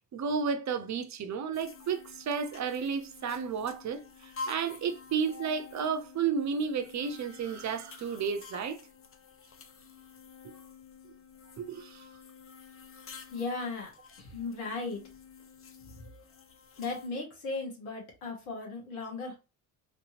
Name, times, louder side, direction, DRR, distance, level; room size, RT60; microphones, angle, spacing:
voice 1, 0.1-4.0 4.5-8.8 11.6-12.0, right 6 dB, 40° right, 0.6 m, -32 dB
sound 1, 1.5-17.1, left 4 dB, 30° left, 0.6 m, -49 dB
voice 2, 13.3-13.9 14.2-15.0 16.8-19.4, left 3 dB, 80° left, 1.5 m, -36 dB
3.3 x 2.8 x 2.8 m
hypercardioid pair, 55°, 45 cm